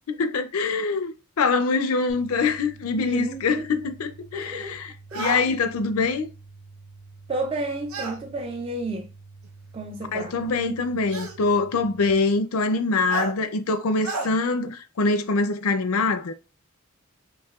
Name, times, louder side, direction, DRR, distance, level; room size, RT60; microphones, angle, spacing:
voice 1, 0.1-6.3 10.1-16.3, left 3 dB, 90° left, 0.5 m, -24 dB
sound 1, 2.1-12.1, right 3 dB, 45° right, 0.9 m, -48 dB
voice 2, 3.0-3.7 4.3-4.8 5.1-5.6 7.3-9.1 9.7-10.4, right 2 dB, 25° right, 0.4 m, -32 dB
sound 2, 5.1-5.5 7.9-8.2 9.4-9.5 11.1-11.4 13.1-13.3 14.0-14.3, right 3 dB, 80° right, 0.7 m, -30 dB
4.7 x 3.1 x 2.3 m
head